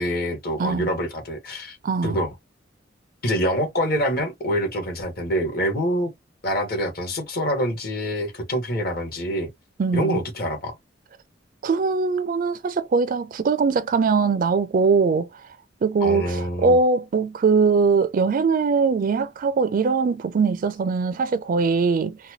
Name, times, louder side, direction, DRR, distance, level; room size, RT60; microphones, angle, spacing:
voice 1, 0.0-1.8 2.0-2.3 3.2-6.1 6.4-9.5 9.9-10.8 16.0-16.8, equal, 55° left, 1.3 m, -25 dB
voice 2, 1.8-2.2 9.8-10.2 11.6-15.3 15.8-22.2, right 4 dB, 45° right, 0.4 m, -21 dB
4.1 x 2.2 x 2.9 m
head